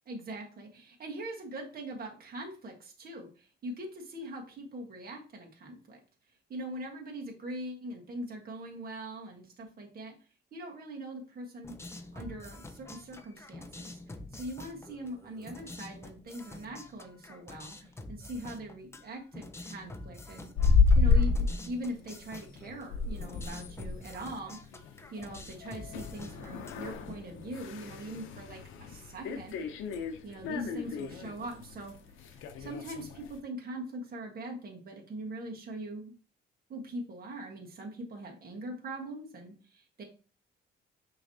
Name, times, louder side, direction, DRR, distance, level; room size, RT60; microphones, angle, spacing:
voice 1, 0.1-6.0 6.5-10.1 10.5-11.7 12.1-14.0 14.3-20.5 20.9-24.6 25.1-29.5 30.2-32.0 32.3-36.1 36.7-40.0, right 1 dB, 50° right, 1 dB, 1.4 m, -42 dB
sound 1, 11.6-27.1, left 2 dB, 15° left, 0.6 m, -47 dB
sound 2, 20.6-21.6 22.1-22.3 22.6-33.3, left 4 dB, 90° left, 0.6 m, -30 dB
5.8 x 3.1 x 2.7 m, 0.36 s
cardioid pair, 90°, 20 cm